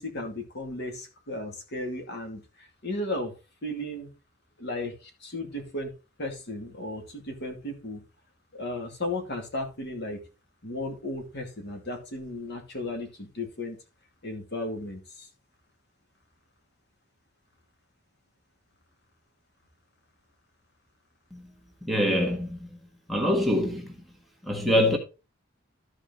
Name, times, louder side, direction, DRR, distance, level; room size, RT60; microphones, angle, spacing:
voice 1, 0.0-3.3 3.6-4.1 4.6-5.9 6.2-8.0 8.5-10.2 10.6-13.8 14.2-15.3, left 1 dB, 60° left, 2.5 m, -35 dB
voice 2, 21.8-22.7 23.1-23.9 24.4-25.0, left 1 dB, ahead, 1.6 m, -24 dB
13.5 x 4.9 x 4.0 m
head